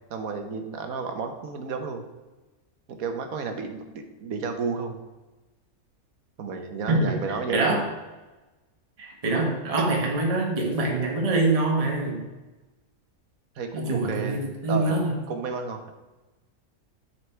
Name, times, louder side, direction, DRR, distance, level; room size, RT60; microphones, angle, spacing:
voice 1, 0.1-2.0 2.9-3.8 4.2-5.0 6.4-7.8 9.8-9.9 13.6-14.4 14.7-14.9 15.3-15.8, right 5 dB, 75° right, 5 dB, 1.4 m, -31 dB
voice 2, 6.9-7.9 9.0-12.3 13.7-15.2, right 2 dB, 25° right, 0 dB, 1.3 m, -25 dB
9.6 x 4.8 x 4.5 m, 1.1 s
omnidirectional pair, 1.5 m